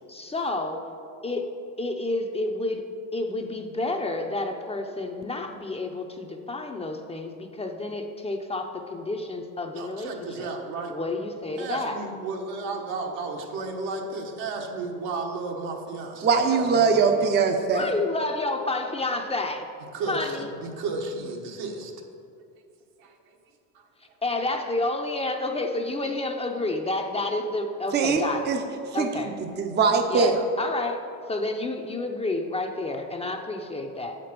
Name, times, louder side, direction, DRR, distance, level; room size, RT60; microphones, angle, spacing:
voice 1, 0.1-0.8 1.2-1.5 1.8-2.8 3.1-10.5 10.9-12.0 17.7-19.7 20.1-20.5 24.2-28.5 28.9-29.3 30.1-31.0 31.3-34.2, left 2 dB, 15° left, 3 dB, 0.6 m, -30 dB
voice 2, 9.7-10.9 11.6-17.3 19.9-20.4 20.6-21.9 23.0-23.1 26.0-26.1, right 3 dB, 70° right, 2 dB, 1.3 m, -33 dB
voice 3, 16.2-17.9 27.9-28.6 28.9-30.4, right 5 dB, 30° right, 5 dB, 0.6 m, -22 dB
7.5 x 5.2 x 5.9 m, 2.5 s
supercardioid pair, 95°, 36 cm